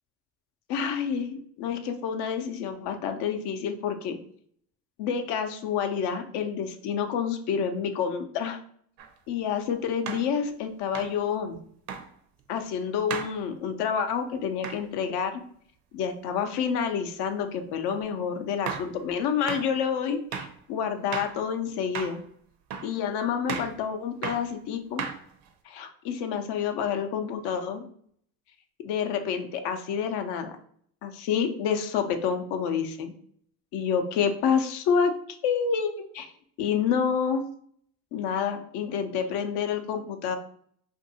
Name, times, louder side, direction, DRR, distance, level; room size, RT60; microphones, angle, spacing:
voice 1, 0.7-4.2 5.0-8.6 9.3-11.6 12.5-15.4 15.9-22.2 22.8-25.0 25.7-27.9 28.8-30.5 31.0-33.1 33.7-35.1 35.4-36.3 36.6-37.4 38.1-40.4, left 7 dB, 55° left, 7 dB, 0.6 m, -28 dB
sound 1, 9.0-9.1 10.1-10.3 10.9-11.2 11.9-12.1 13.1-13.4 14.6-14.8 17.9-18.0 18.7-18.9 19.5-19.7 20.3-20.6 21.1-21.4 21.9-22.2 22.7-22.9 23.5-23.8 24.2-24.5 25.0-25.5, right 7 dB, 50° right, 0.6 m, -34 dB
2.6 x 2.6 x 2.7 m, 0.63 s
hypercardioid pair, 75°, 47 cm